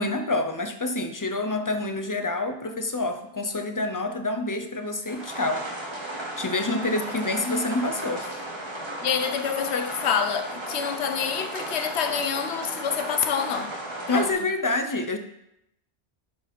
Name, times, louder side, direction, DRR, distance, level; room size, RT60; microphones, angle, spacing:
voice 1, 0.0-5.7 6.4-8.3 14.1-15.2, left 2 dB, 20° left, 0.5 m, -27 dB
sound 1, 5.1-14.3, right 1 dB, 25° right, 1.5 m, -35 dB
voice 2, 9.0-13.7 14.1-14.3, left 7 dB, 70° left, 1.0 m, -27 dB
11.0 x 4.8 x 4.4 m
omnidirectional pair, 1.2 m